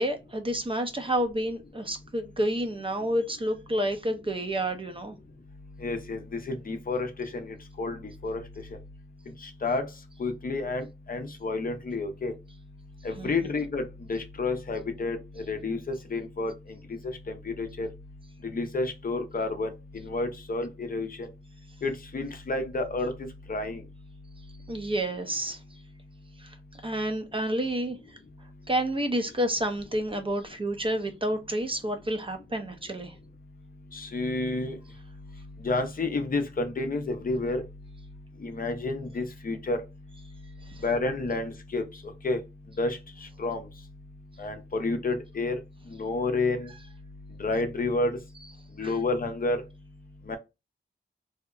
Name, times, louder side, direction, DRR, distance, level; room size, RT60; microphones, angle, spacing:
voice 1, 0.0-5.1 13.2-13.3 24.7-25.6 26.4-28.0 28.7-33.1 40.7-40.8 48.8-48.9, right 1 dB, 25° right, 0.6 m, -29 dB
voice 2, 5.8-7.5 7.8-8.0 8.2-8.4 9.4-9.9 10.2-12.3 13.0-13.8 14.1-15.2 15.5-16.5 17.3-17.9 18.5-19.7 20.1-21.3 21.8-23.1 23.5-23.8 33.9-34.8 35.6-37.6 38.4-39.8 40.8-41.8 42.2-42.4 42.8-43.0 43.4-43.6 44.4-45.6 46.0-46.7 47.4-48.2 48.8-49.6 50.3-50.4, left 3 dB, 45° left, 0.6 m, -29 dB
2.7 x 2.1 x 2.3 m
cardioid pair, 60°, 20 cm